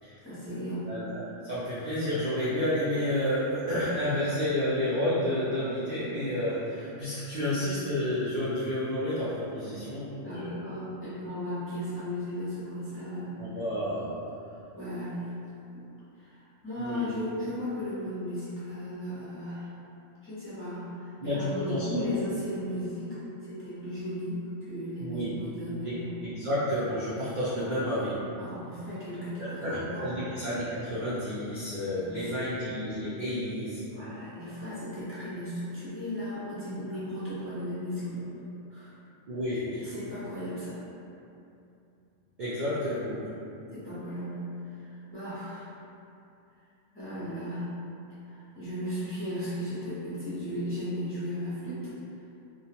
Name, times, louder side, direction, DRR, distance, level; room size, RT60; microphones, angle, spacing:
voice 1, 0.2-0.9 10.2-13.6 14.7-15.3 15.7-15.9 16.1-19.7 20.2-26.1 27.6-27.8 28.4-30.1 31.9-32.5 33.9-38.4 38.7-39.0 39.7-40.8 43.7-45.7 46.9-47.7 48.3-51.8, equal, 15° left, -13 dB, 0.4 m, -36 dB
voice 2, 0.9-10.6 13.4-14.1 16.8-17.1 21.2-22.1 25.0-25.4 25.8-28.2 29.4-33.8 39.3-39.9 42.4-43.3, left 1 dB, 65° right, -10 dB, 0.4 m, -30 dB
2.2 x 2.2 x 2.8 m, 2.7 s
omnidirectional pair, 1.3 m